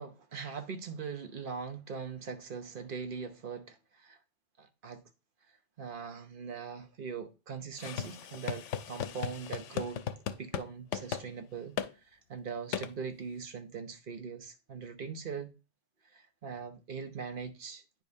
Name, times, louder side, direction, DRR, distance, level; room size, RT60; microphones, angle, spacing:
voice 1, 0.0-4.2 4.6-5.0 5.8-15.5 16.1-18.0, right 5 dB, 50° right, 0.9 m, -41 dB
sound 1, 7.8-10.7 10.9-11.2 11.8-11.9 12.7-12.9, left 8 dB, 85° left, 0.9 m, -36 dB
9.4 x 5.2 x 2.7 m
omnidirectional pair, 1.2 m